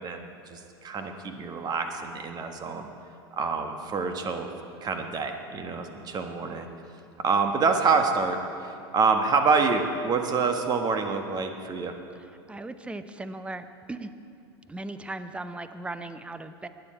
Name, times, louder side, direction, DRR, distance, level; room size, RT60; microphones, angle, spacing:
voice 1, 0.0-2.9 3.4-4.5 4.8-6.7 7.2-8.4 8.6-11.9, right 5 dB, 30° right, 5 dB, 1.4 m, -26 dB
voice 2, 12.2-14.1 14.7-16.7, right 2 dB, 10° right, 11 dB, 0.7 m, -38 dB
20.0 x 9.3 x 4.5 m, 2.6 s
hypercardioid pair, 90°, 13 cm